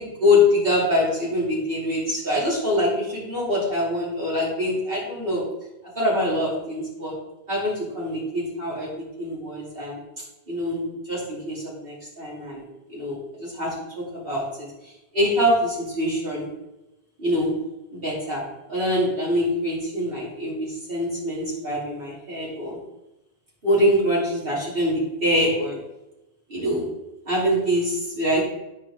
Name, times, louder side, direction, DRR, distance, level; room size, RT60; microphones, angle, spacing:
voice 1, 0.0-5.4 5.9-7.1 7.5-10.0 10.5-12.6 12.9-16.5 17.2-17.5 17.9-18.4 18.7-22.8 23.6-25.8 26.5-26.8 27.2-28.4, left 1 dB, 65° right, -6 dB, 3.3 m, -24 dB
9.0 x 6.5 x 3.8 m, 0.96 s
omnidirectional pair, 1.0 m